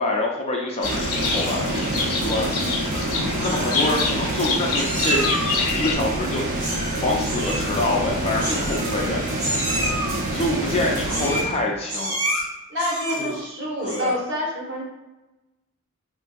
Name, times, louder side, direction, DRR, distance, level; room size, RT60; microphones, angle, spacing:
voice 1, 0.0-2.5 3.4-5.2 5.5-6.4 7.0-9.2 10.3-12.2 13.2-13.4 13.8-14.1, left 2 dB, 25° left, -1 dB, 0.4 m, -26 dB
Livestock farm animals working animals, 0.8-5.9, left 4 dB, 80° left, 0.5 m, -27 dB
sound 1, 0.8-11.4, right 1 dB, 35° right, 0.5 m, -27 dB
Meow, 2.6-3.1 3.4-4.1 4.7-5.6 6.6-7.0 7.2-7.7 8.4-9.1 9.4-10.1 11.0-11.6 11.9-12.4 12.8-13.4 13.8-14.2, right 1 dB, 85° right, 1.1 m, -28 dB
voice 2, 12.7-14.8, equal, 50° right, -3 dB, 0.9 m, -27 dB
3.5 x 2.5 x 2.3 m, 1.0 s
head